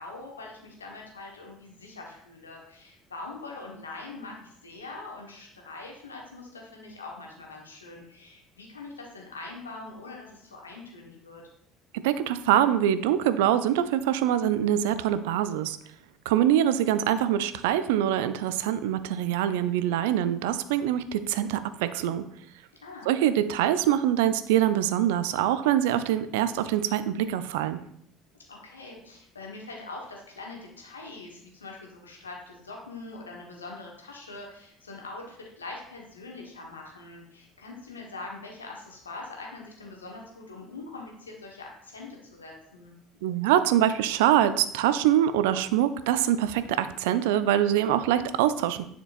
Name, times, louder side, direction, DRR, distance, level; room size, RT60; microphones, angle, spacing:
voice 1, 0.0-11.4 22.8-23.1 28.5-42.9, left 3 dB, 85° left, 0 dB, 1.3 m, -43 dB
voice 2, 12.0-15.8 16.3-22.2 23.1-27.8 43.2-48.9, right 11 dB, 65° right, 13 dB, 0.4 m, -24 dB
9.6 x 4.4 x 2.5 m, 0.67 s
figure-of-eight pair, 60°, 0 cm